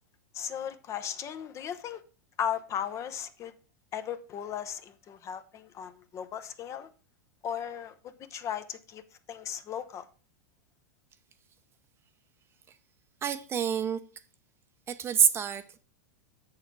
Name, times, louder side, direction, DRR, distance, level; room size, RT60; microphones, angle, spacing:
voice 1, 0.3-2.0 2.4-3.5 3.9-6.9 7.4-7.9 8.3-9.0 9.3-10.0, left 9 dB, 35° left, 0.8 m, -36 dB
voice 2, 13.2-14.0 14.9-15.8, right 8 dB, 25° right, 0.7 m, -27 dB
7.0 x 6.7 x 4.6 m
hypercardioid pair, 115°, 9 cm